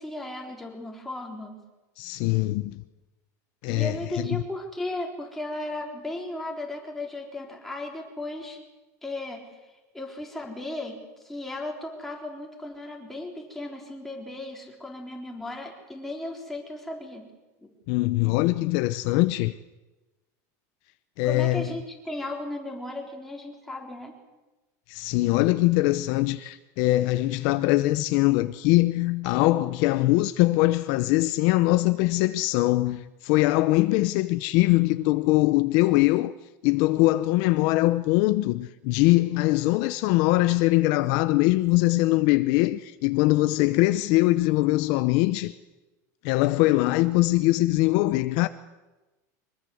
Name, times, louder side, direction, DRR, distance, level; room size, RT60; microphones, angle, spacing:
voice 1, 0.0-1.6 3.6-8.6 9.0-9.4 9.9-11.0 11.2-17.2 17.6-17.7 21.2-24.1, left 2 dB, 5° left, 3.8 m, -35 dB
voice 2, 2.0-2.8 3.6-4.0 17.9-19.6 21.2-21.7 24.9-36.3 36.6-45.6 46.2-48.5, left 19 dB, 45° left, 0.7 m, -22 dB
24.0 x 21.5 x 7.9 m
supercardioid pair, 170°, 9 cm